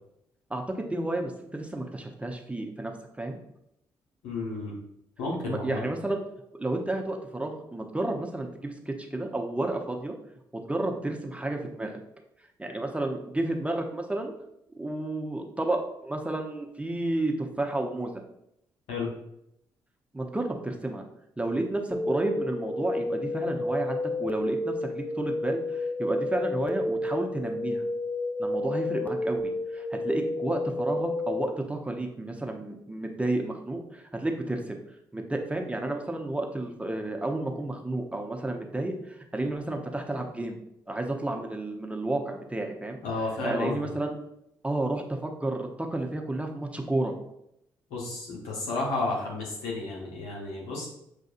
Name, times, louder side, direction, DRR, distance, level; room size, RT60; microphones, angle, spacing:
voice 1, 0.5-3.4 5.4-6.2 6.6-10.1 10.5-12.0 12.6-14.3 14.8-18.1 20.1-21.0 21.4-27.8 28.4-34.8 35.1-40.6 40.9-43.0 43.4-44.2 44.6-47.1, right 2 dB, 10° right, 2 dB, 0.7 m, -31 dB
voice 2, 4.2-4.7 5.2-5.8 18.9-19.1 43.0-43.9 47.9-50.9, left 3 dB, 80° left, -3 dB, 1.1 m, -32 dB
sound 1, 21.9-31.5, left 2 dB, 15° left, 0.4 m, -31 dB
6.4 x 2.5 x 2.5 m, 0.78 s
hypercardioid pair, 45°, 10 cm